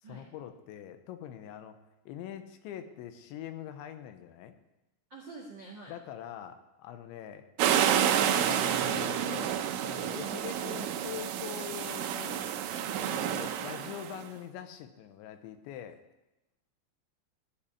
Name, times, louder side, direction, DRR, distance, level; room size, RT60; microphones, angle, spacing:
voice 1, 0.0-1.8 2.1-4.5 5.9-7.5 8.2-12.5 12.9-16.0, left 10 dB, 85° left, 9 dB, 3.1 m, -43 dB
voice 2, 5.1-5.9 10.1-10.3, right 3 dB, 70° right, -2 dB, 1.1 m, -46 dB
sound 1, 7.6-14.2, right 9 dB, 90° right, 3.3 m, -29 dB
15.5 x 5.6 x 9.8 m, 0.96 s
omnidirectional pair, 5.4 m